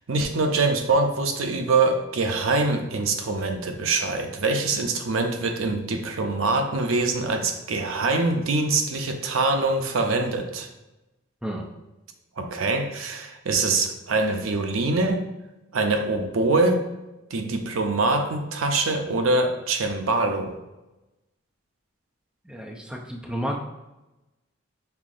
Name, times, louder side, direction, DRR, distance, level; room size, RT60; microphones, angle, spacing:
voice 1, 0.1-10.7 12.4-15.2 15.7-16.8 17.3-20.5, right 3 dB, 80° right, 5 dB, 0.6 m, -24 dB
voice 2, 22.5-23.5, equal, 5° right, -1 dB, 0.5 m, -31 dB
5.7 x 3.6 x 2.5 m, 1.0 s
head